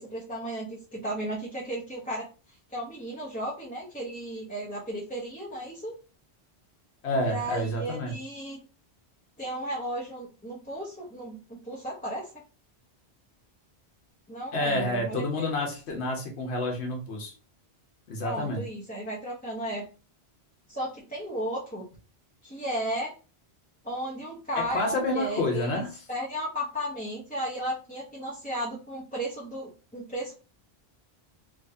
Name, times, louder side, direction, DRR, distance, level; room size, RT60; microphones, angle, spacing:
voice 1, 0.0-2.3 2.7-5.9 7.2-8.6 9.4-12.3 14.3-15.5 18.2-19.9 20.7-21.8 22.4-23.1 23.8-25.8 26.1-30.3, right 1 dB, 10° left, -6 dB, 0.7 m, -34 dB
voice 2, 7.0-8.1 14.5-17.3 18.1-18.6 24.6-26.0, left 1 dB, 85° left, 2 dB, 1.2 m, -29 dB
3.5 x 2.9 x 2.7 m, 0.34 s
omnidirectional pair, 1.1 m